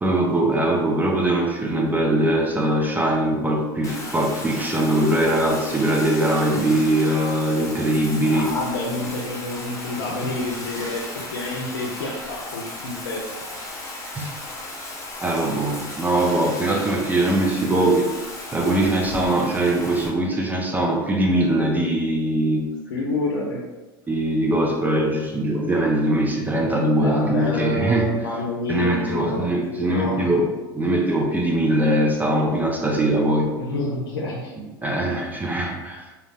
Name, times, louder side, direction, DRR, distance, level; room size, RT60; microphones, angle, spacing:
voice 1, 0.0-8.5 14.2-14.3 15.2-18.1 18.5-22.7 24.1-28.1 28.7-30.5 30.7-33.5 34.8-36.0, right 1 dB, 15° right, 0 dB, 0.4 m, -21 dB
Bathtub (filling or washing), 3.8-20.1, left 2 dB, 25° left, 0.8 m, -35 dB
voice 2, 8.2-13.3 22.9-23.6 27.0-30.3 33.6-34.5, left 1 dB, 90° left, -2 dB, 0.4 m, -28 dB
2.2 x 2.0 x 3.3 m, 1.1 s
hypercardioid pair, 95°, 12 cm